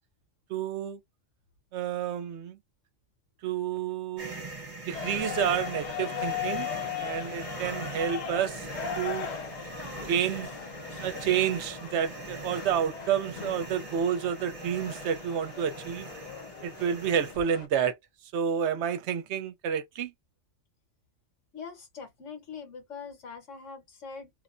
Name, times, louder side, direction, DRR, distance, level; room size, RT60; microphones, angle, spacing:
voice 1, 0.5-1.0 1.7-2.6 3.4-4.5 4.9-6.7 7.0-8.7 8.9-9.3 10.0-10.5 11.0-16.1 16.6-18.0 18.3-20.1, right 8 dB, 75° right, 0.9 m, -29 dB
sound 1, 4.2-17.3, right 3 dB, 35° right, 0.7 m, -42 dB
sound 2, 4.9-17.7, left 9 dB, 65° left, 0.4 m, -38 dB
voice 2, 21.5-24.3, left 5 dB, 90° left, 1.5 m, -43 dB
2.9 x 2.0 x 2.5 m
omnidirectional pair, 1.2 m